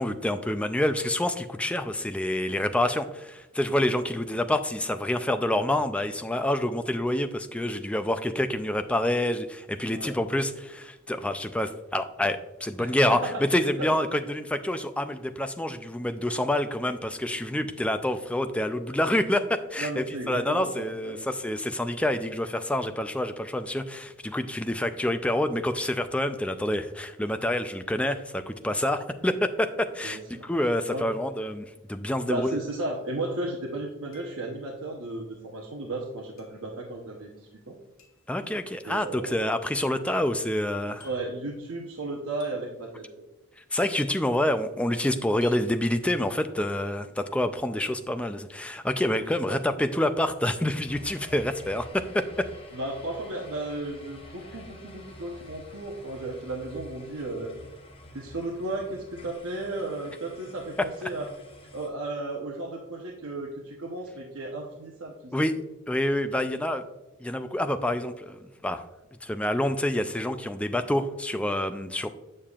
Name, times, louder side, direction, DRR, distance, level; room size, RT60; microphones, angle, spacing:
voice 1, 0.0-32.6 38.3-41.1 43.6-52.5 65.3-65.5 65.9-66.8 67.2-68.8 69.2-72.1, left 1 dB, 5° left, 8 dB, 0.3 m, -27 dB
voice 2, 12.8-13.4 13.8-14.0 19.8-21.6 30.0-30.5 30.9-31.1 32.3-37.8 38.8-39.4 41.0-43.2 49.5-49.6 52.7-57.5 58.1-61.3 61.7-65.5, right 2 dB, 75° right, -1 dB, 0.8 m, -34 dB
sound 1, 32.9-33.0 34.1-34.7 36.4-36.7 38.0-38.3 39.6-40.0 41.0-41.4 42.4-42.8 43.9-44.4 45.4-45.7, left 4 dB, 80° left, 1.6 m, -55 dB
sound 2, 50.8-61.9, left 1 dB, 25° left, 0.8 m, -48 dB
7.3 x 6.6 x 2.4 m, 1.0 s
head